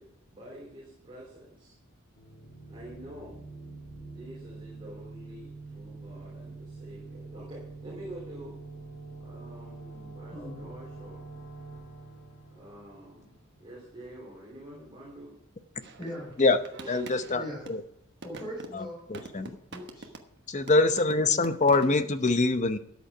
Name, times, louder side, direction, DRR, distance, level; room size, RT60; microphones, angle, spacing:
voice 1, 0.0-1.7 2.7-3.4 4.1-8.6 9.2-11.2 12.5-13.3 13.6-15.4 16.7-17.0, right 1 dB, 25° right, -5 dB, 3.5 m, -47 dB
sound 1, 2.2-13.7, right 3 dB, 50° left, 2.4 m, -45 dB
voice 2, 10.3-10.7 16.0-16.3 17.3-17.6 18.2-19.0 19.7-20.1, equal, 20° left, -7 dB, 5.9 m, -39 dB
sound 2, 15.8-17.8 18.2-20.4 20.7-22.0, right 3 dB, 50° right, 1.2 m, -46 dB
voice 3, 16.9-17.8 18.7-18.8 19.1-19.4 20.5-22.8, left 3 dB, 35° left, 10 dB, 0.7 m, -24 dB
13.0 x 8.3 x 5.0 m, 0.77 s
head